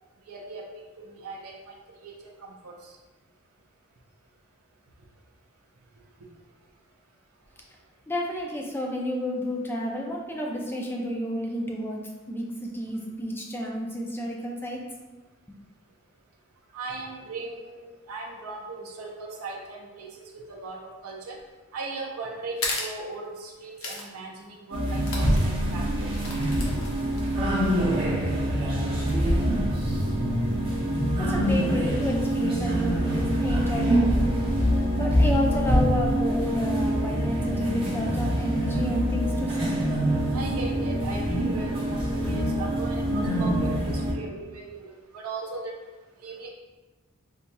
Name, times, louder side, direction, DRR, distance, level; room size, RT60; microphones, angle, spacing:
voice 1, 0.3-0.7 1.0-1.7 2.0-3.0 16.7-21.4 21.7-26.2 40.3-45.8 46.2-46.5, right 3 dB, 80° right, 0 dB, 0.5 m, -38 dB
voice 2, 8.1-12.0 12.3-14.8 31.2-34.3 34.9-39.8, equal, 10° left, -1 dB, 0.4 m, -31 dB
sound 1, 22.6-22.9 23.8-24.1 24.4-24.5 25.0-25.4 26.1-27.3, left 2 dB, 65° left, 0.7 m, -33 dB
sound 2, 24.7-44.1, equal, 25° right, 0.7 m, -25 dB
4.6 x 2.7 x 2.3 m, 1.2 s
head